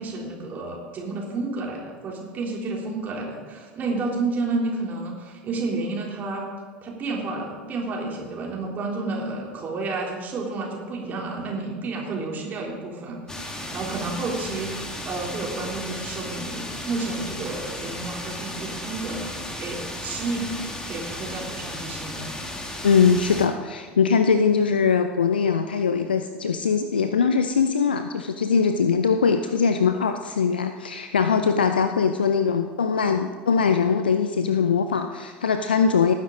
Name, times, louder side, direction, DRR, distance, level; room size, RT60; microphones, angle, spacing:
voice 1, 0.0-6.5 6.8-20.5 20.9-22.3, right 3 dB, 35° right, -2 dB, 3.3 m, -31 dB
sound 1, 13.3-23.5, left 1 dB, 15° left, 1.8 m, -35 dB
voice 2, 22.8-36.1, left 6 dB, 80° left, 8 dB, 0.5 m, -21 dB
18.5 x 9.9 x 3.9 m, 1.5 s
figure-of-eight pair, 75°, 5 cm